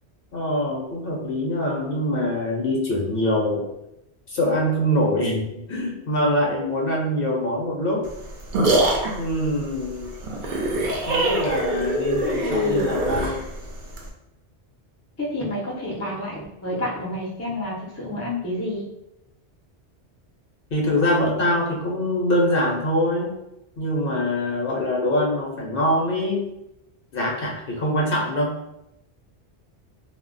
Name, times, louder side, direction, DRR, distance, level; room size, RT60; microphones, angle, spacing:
voice 1, 0.3-3.7 4.3-8.1 9.2-10.1 11.1-13.4 20.7-23.3 23.8-26.4 27.1-28.5, left 1 dB, 60° left, -1 dB, 0.8 m, -24 dB
sound 1, 8.0-14.1, right 2 dB, 55° right, 0.5 m, -24 dB
voice 2, 12.4-12.9 15.2-18.9, left 2 dB, 20° left, -4 dB, 0.4 m, -28 dB
2.1 x 2.1 x 3.7 m, 0.88 s
omnidirectional pair, 1.2 m